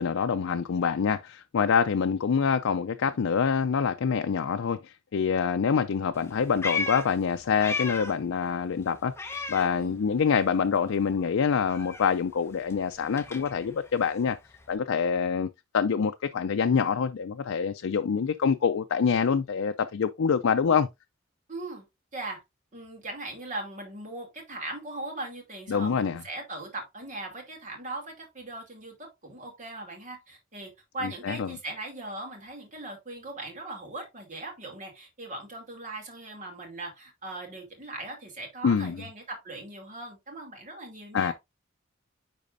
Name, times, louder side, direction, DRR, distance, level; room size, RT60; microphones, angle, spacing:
voice 1, 0.0-14.4 14.7-15.5 15.7-20.9 25.7-26.2 31.0-31.5 38.6-39.0 41.1-41.3, left 6 dB, 70° left, 0.4 m, -26 dB
Meow, 6.1-8.3 8.6-10.3 10.6-14.8, left 4 dB, 15° left, 0.9 m, -37 dB
voice 2, 21.5-21.8 22.1-22.4 22.7-41.3, right 2 dB, 40° right, 2.6 m, -39 dB
10.5 x 4.1 x 2.6 m
head